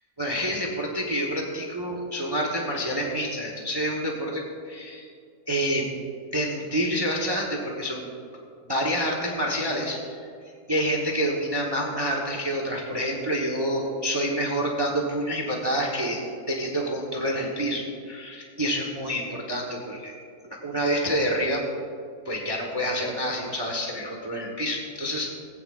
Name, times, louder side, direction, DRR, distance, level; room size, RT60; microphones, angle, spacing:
voice 1, 0.2-5.1 5.5-5.9 6.3-8.1 8.7-10.2 10.7-16.2 16.5-20.1 20.6-21.6 22.2-25.3, equal, 20° right, -1 dB, 0.9 m, -28 dB
18.0 x 8.9 x 2.4 m, 2.3 s
omnidirectional pair, 1.7 m